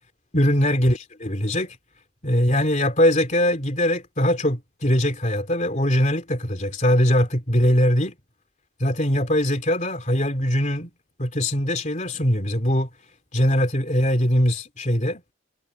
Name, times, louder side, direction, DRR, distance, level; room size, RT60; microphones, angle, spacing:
voice 1, 0.3-1.8 2.2-8.1 8.8-10.9 11.2-12.9 13.3-15.2, equal, 35° left, 3.4 m, -21 dB
head